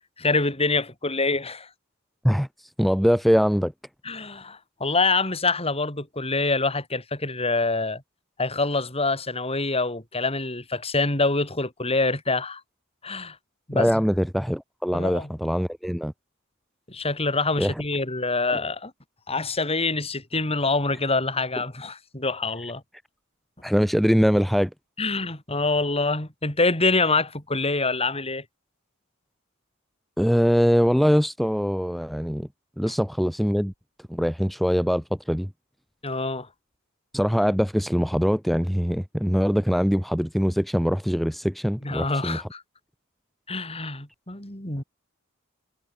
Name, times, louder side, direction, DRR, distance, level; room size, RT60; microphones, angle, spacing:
voice 1, 0.2-1.7 4.0-8.0 8.4-12.6 13.0-13.4 13.7-14.0 14.9-15.3 16.9-18.9 19.3-22.8 25.0-28.4 36.0-36.5 41.8-42.6 43.5-44.8, left 3 dB, 30° left, 6.1 m, -25 dB
voice 2, 2.8-3.7 13.7-16.1 17.6-17.7 18.5-18.6 23.6-24.7 30.2-32.5 32.8-33.7 34.1-35.5 37.1-42.4, equal, ahead, 3.0 m, -22 dB
head